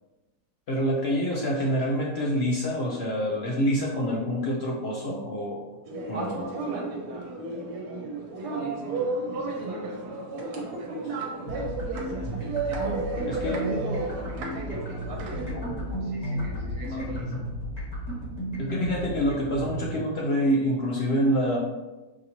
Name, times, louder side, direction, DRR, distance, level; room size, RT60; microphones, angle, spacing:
voice 1, 0.7-5.6 6.1-6.5 13.3-13.6 16.9-17.4 18.6-21.6, equal, 70° left, -2 dB, 0.6 m, -27 dB
sound 1, 5.9-15.5, right 2 dB, 80° right, 1.2 m, -32 dB
voice 2, 8.5-12.3 12.6-17.4, right 3 dB, 55° right, -3 dB, 1.4 m, -42 dB
sound 2, 11.4-19.9, equal, 25° left, 1.3 m, -34 dB
5.0 x 2.7 x 2.8 m, 1.1 s
omnidirectional pair, 1.7 m